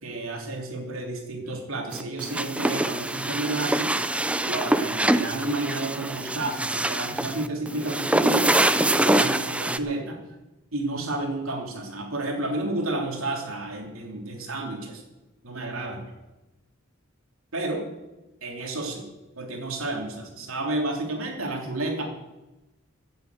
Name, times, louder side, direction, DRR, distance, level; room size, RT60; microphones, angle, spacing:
voice 1, 0.0-4.0 4.4-10.2 10.7-15.0 15.4-16.0 17.5-17.9 18.4-19.1 19.3-22.1, right 2 dB, 85° right, 2 dB, 3.2 m, -31 dB
sound 1, 1.9-9.8, right 1 dB, 5° right, 0.5 m, -24 dB
15.5 x 7.9 x 7.9 m, 1.0 s
head